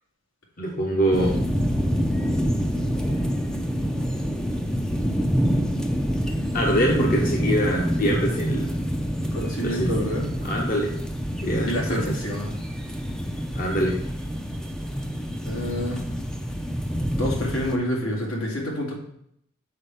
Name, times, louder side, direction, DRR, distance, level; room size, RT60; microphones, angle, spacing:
voice 1, 0.6-1.5 2.7-3.0 6.5-8.7 9.6-9.9 10.4-10.9 11.4-12.2 13.5-13.9, equal, 45° left, -1 dB, 1.0 m, -24 dB
sound 1, 1.1-17.8, equal, 5° left, 0.5 m, -27 dB
voice 2, 9.3-10.3 11.6-12.5 15.5-16.0 17.2-18.9, equal, 80° left, -1 dB, 2.2 m, -28 dB
6.7 x 4.6 x 5.7 m, 0.71 s
head